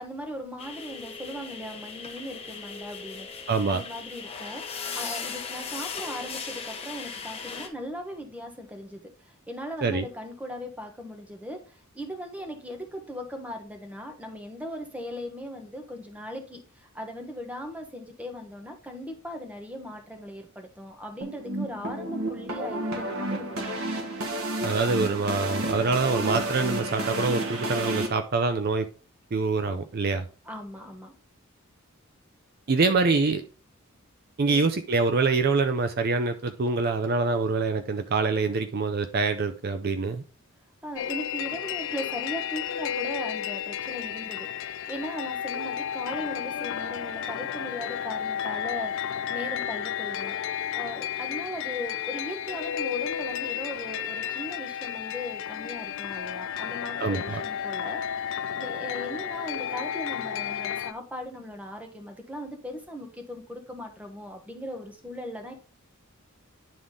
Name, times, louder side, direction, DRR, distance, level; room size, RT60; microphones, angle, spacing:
voice 1, 0.0-24.0 30.4-31.1 34.5-34.6 40.8-50.4 50.7-65.5, equal, 5° right, 4 dB, 1.2 m, -38 dB
sound 1, 0.6-7.7, left 5 dB, 30° left, 1.1 m, -38 dB
voice 2, 3.5-3.8 9.8-10.1 24.6-28.9 29.3-30.3 32.7-33.4 34.4-40.2 57.0-57.4, right 4 dB, 50° right, 9 dB, 0.5 m, -25 dB
sound 2, 21.2-28.1, right 1 dB, 85° right, 1.5 m, -31 dB
sound 3, 41.0-60.9, left 9 dB, 60° left, 0.3 m, -32 dB
9.8 x 3.7 x 3.7 m, 0.36 s
head